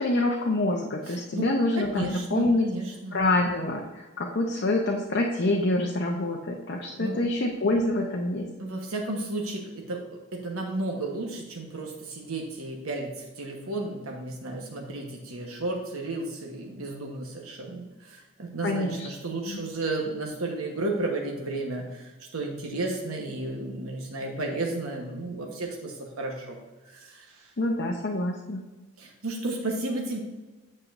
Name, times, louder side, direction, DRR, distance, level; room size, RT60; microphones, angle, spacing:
voice 1, 0.0-2.7 3.1-8.5 18.6-19.1 19.5-19.6 27.6-28.6, left 2 dB, 50° left, 0 dB, 0.7 m, -26 dB
voice 2, 1.1-1.5 1.7-3.2 7.0-7.2 8.6-26.6 26.9-27.5 29.0-30.2, right 2 dB, 75° right, 1 dB, 1.2 m, -33 dB
8.8 x 6.7 x 2.6 m, 1.2 s
head